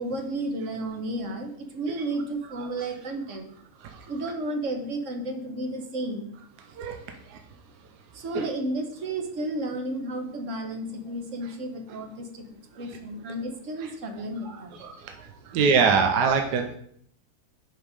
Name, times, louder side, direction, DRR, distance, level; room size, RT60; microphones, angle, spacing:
voice 1, 0.0-3.5 4.1-6.3 6.7-6.8 8.1-12.4 12.7-14.8, right 1 dB, 50° right, 5 dB, 1.2 m, -32 dB
voice 2, 14.8-16.8, right 5 dB, 75° right, 5 dB, 1.3 m, -24 dB
6.2 x 5.4 x 4.9 m, 0.65 s
omnidirectional pair, 1.8 m